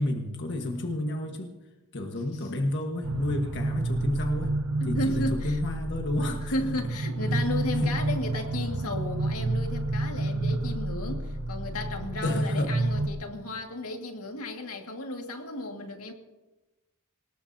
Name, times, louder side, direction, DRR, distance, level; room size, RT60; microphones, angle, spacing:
voice 1, 0.0-1.6 1.9-4.6 4.8-6.5 7.3-7.4 7.8-7.9 12.2-12.7, left 1 dB, 55° left, 3 dB, 1.5 m, -30 dB
sound 1, 3.0-13.1, right 2 dB, 90° right, 1.0 m, -30 dB
voice 2, 4.8-5.6 6.5-16.1, left 1 dB, 90° left, 3 dB, 2.1 m, -34 dB
24.5 x 19.5 x 2.8 m, 1.1 s
head